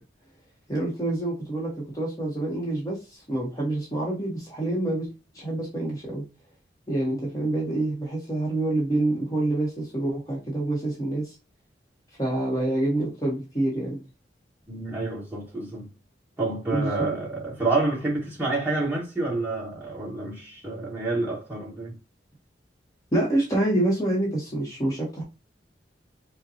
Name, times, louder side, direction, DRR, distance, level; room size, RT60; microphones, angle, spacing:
voice 1, 0.7-5.1 5.3-6.2 6.9-11.3 12.2-14.0 16.7-17.1 23.1-25.2, right 1 dB, 20° left, 1.0 m, -27 dB
voice 2, 14.7-15.9 16.4-21.9, right 2 dB, 10° right, 1.6 m, -28 dB
5.2 x 2.2 x 2.7 m
head